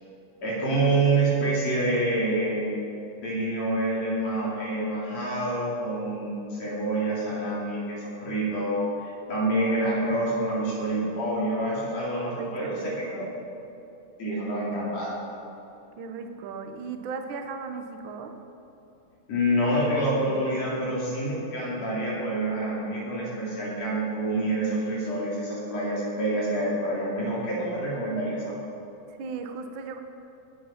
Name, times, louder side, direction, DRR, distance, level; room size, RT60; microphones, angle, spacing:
voice 1, 0.4-2.7 3.2-8.9 9.3-12.9 13.2-13.3 14.2-15.1 19.3-28.5, right 1 dB, 55° left, -6 dB, 3.9 m, -27 dB
voice 2, 12.2-13.3 16.0-18.4 29.1-30.0, right 5 dB, 90° right, 5 dB, 1.0 m, -37 dB
20.0 x 7.9 x 5.9 m, 2.9 s
omnidirectional pair, 3.8 m